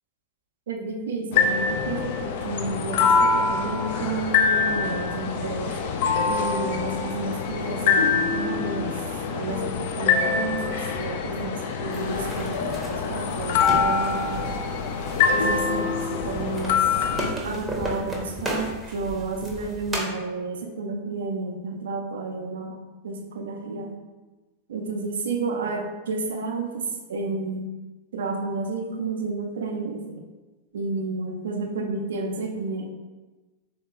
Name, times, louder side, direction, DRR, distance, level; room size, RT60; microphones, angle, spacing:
voice 1, 0.7-5.9 6.2-9.1 9.3-14.6 15.3-16.9 17.4-23.9 24.7-27.7 28.1-30.3 30.7-32.9, right 3 dB, 65° right, 4 dB, 0.4 m, -31 dB
sound 1, 1.3-17.3, left 5 dB, 50° left, 0.3 m, -24 dB
sound 2, 11.9-20.1, right 1 dB, 10° right, 0.7 m, -35 dB
3.5 x 2.7 x 3.5 m, 1.2 s
figure-of-eight pair, 90°, 0 cm